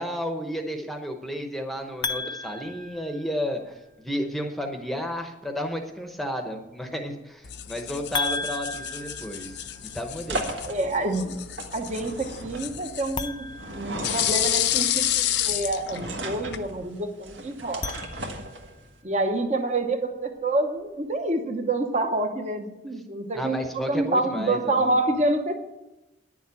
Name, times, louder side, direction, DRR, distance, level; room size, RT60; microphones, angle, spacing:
voice 1, 0.0-10.5 23.3-24.9, equal, ahead, 4 dB, 0.9 m, -32 dB
sound 1, 2.0-3.7 8.1-10.2 13.1-14.7 17.6-18.8, left 3 dB, 25° left, 0.5 m, -35 dB
sound 2, 7.4-16.7, left 12 dB, 60° left, 0.6 m, -30 dB
sound 3, 9.1-19.0, right 2 dB, 70° right, 1.7 m, -37 dB
voice 2, 10.7-11.4 11.7-18.0 19.0-25.5, right 2 dB, 35° right, 6 dB, 0.9 m, -27 dB
10.0 x 7.2 x 8.2 m, 0.98 s
head